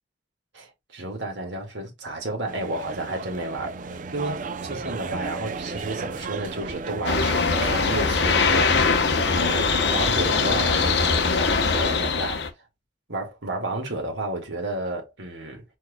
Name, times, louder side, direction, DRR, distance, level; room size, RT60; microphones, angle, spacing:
voice 1, 0.5-12.5 13.1-15.6, right 2 dB, 80° right, 2.0 m, -32 dB
sound 1, 2.5-11.3, right 4 dB, 45° right, 0.5 m, -34 dB
sound 2, 7.0-12.5, left 4 dB, 65° left, 0.8 m, -22 dB
4.6 x 4.5 x 2.2 m
head